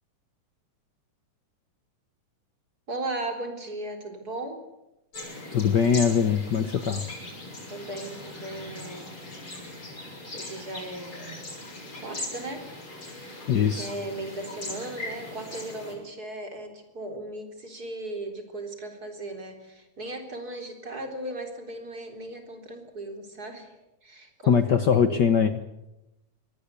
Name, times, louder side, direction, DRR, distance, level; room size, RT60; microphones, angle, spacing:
voice 1, 2.9-4.6 7.7-9.1 10.3-11.3 12.0-12.7 13.8-25.3, right 2 dB, 30° right, 5 dB, 4.2 m, -37 dB
sound 1, 5.1-15.9, left 2 dB, 40° left, 8.6 m, -40 dB
voice 2, 5.5-7.0 13.5-13.9 24.5-25.6, left 7 dB, 90° left, 10 dB, 0.9 m, -22 dB
24.0 x 19.0 x 8.3 m, 0.91 s
omnidirectional pair, 3.7 m